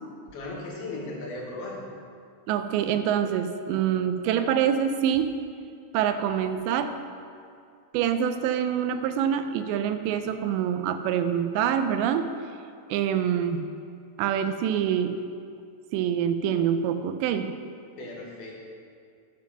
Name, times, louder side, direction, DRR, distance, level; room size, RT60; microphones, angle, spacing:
voice 1, 0.3-1.8 18.0-18.6, left 2 dB, 65° left, -3 dB, 3.4 m, -36 dB
voice 2, 2.5-5.3 5.9-6.9 7.9-12.3 12.9-13.6 14.2-15.2 15.9-17.5, right 9 dB, 90° right, 9 dB, 2.9 m, -25 dB
11.0 x 7.7 x 6.2 m, 2.3 s
omnidirectional pair, 4.9 m